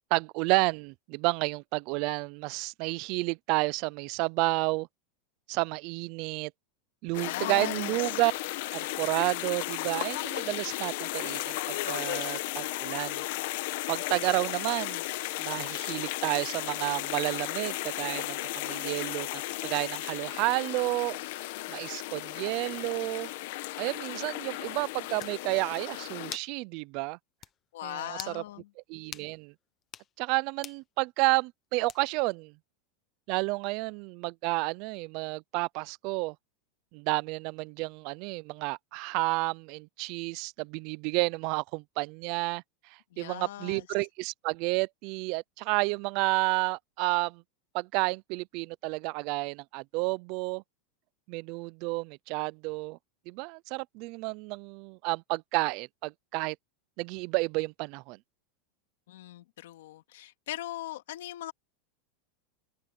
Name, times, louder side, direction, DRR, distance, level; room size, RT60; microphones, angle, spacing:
voice 1, 0.1-4.9 5.5-6.5 7.0-8.3 8.7-13.2 13.9-15.0 15.4-21.2 21.7-23.3 23.8-27.2 27.8-28.4 28.9-29.5 30.2-32.5 33.3-36.3 36.9-42.6 43.2-47.4 47.7-50.6 51.3-53.0 53.3-56.6 57.0-58.2, right 25 dB, 40° right, 0.4 m, -31 dB
sound 1, 7.1-26.4, left 18 dB, 55° left, 1.1 m, -35 dB
voice 2, 7.2-8.2 27.7-28.7 43.1-43.9 59.1-61.5, left 14 dB, 75° left, 2.1 m, -39 dB
sound 2, 24.7-24.8 25.2-25.4 26.3-26.6 26.9-27.0 27.4-27.6 28.1-28.4 29.1-29.3 29.8-30.1 30.6-30.8 31.9-32.2, left 10 dB, 20° left, 0.9 m, -43 dB
open air
supercardioid pair, 175°, 0 cm